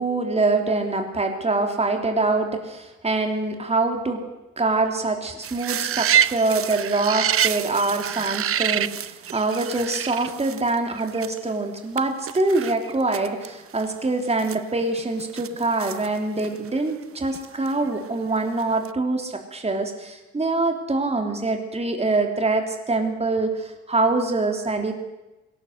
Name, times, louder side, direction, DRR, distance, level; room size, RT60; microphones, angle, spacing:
voice 1, 0.0-4.2 4.6-24.9, right 3 dB, 20° right, 4 dB, 3.2 m, -24 dB
sound 1, 5.4-11.5 12.0-12.1 12.3-13.5 13.8-13.9 14.3-16.8 17.3-18.3 18.6-18.9, right 9 dB, 50° right, 0.7 m, -27 dB
21.0 x 18.0 x 8.0 m, 1.0 s
cardioid pair, 90°, 30 cm